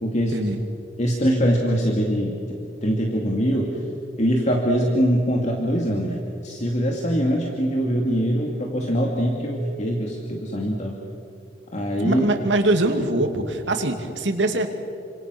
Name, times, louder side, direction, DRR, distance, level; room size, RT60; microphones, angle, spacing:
voice 1, 0.0-0.4 1.0-2.4 2.8-3.8 4.2-6.2 6.4-11.0 11.7-12.2, equal, 40° left, 0 dB, 2.6 m, -23 dB
voice 2, 12.0-14.7, right 1 dB, 90° right, 4 dB, 2.7 m, -22 dB
29.0 x 26.0 x 6.3 m, 2.6 s
head